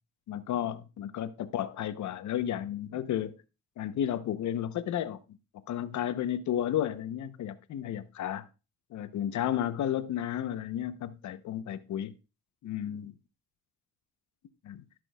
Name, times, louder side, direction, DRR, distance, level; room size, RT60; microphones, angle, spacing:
voice 1, 0.3-3.4 3.8-5.2 5.7-8.4 8.9-12.1 12.6-13.1 14.6-14.8, left 10 dB, 70° left, 0.9 m, -32 dB
17.5 x 6.1 x 2.3 m
cardioid pair, 90°, 30 cm